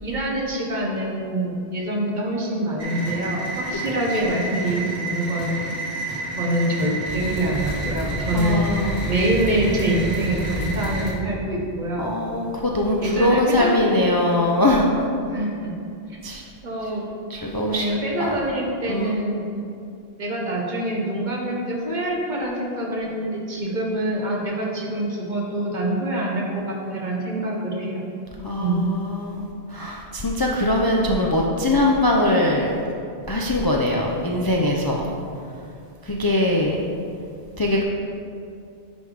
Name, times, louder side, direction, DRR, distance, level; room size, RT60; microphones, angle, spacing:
voice 1, 0.0-5.7 6.4-8.6 9.1-12.1 13.0-13.7 15.2-15.7 16.1-16.2 16.6-17.0 17.7-19.4 20.2-28.0 28.6-28.8, right 1 dB, 50° right, -2 dB, 1.2 m, -25 dB
sound 1, 2.8-11.1, right 1 dB, 30° right, 1.7 m, -29 dB
voice 2, 8.3-9.1 12.0-14.9 16.2-16.4 17.3-17.9 18.2-18.4 18.9-19.1 28.4-32.8 33.3-35.0 36.0-36.8 37.6-37.8, left 1 dB, 30° left, -2 dB, 0.4 m, -22 dB
10.5 x 3.5 x 4.9 m, 2.5 s
omnidirectional pair, 1.1 m